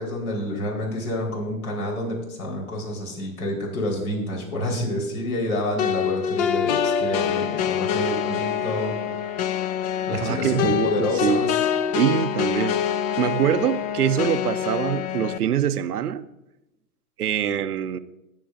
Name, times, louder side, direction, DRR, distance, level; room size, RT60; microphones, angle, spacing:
voice 1, 0.0-9.3 10.1-11.7, left 1 dB, 70° left, -1 dB, 4.6 m, -28 dB
sound 1, 5.8-15.4, left 9 dB, 30° left, 0.5 m, -25 dB
voice 2, 10.1-11.4 11.9-12.8 13.2-16.2 17.2-18.0, right 9 dB, 90° right, 12 dB, 0.8 m, -24 dB
19.5 x 7.5 x 2.7 m, 0.91 s
hypercardioid pair, 120°, 44 cm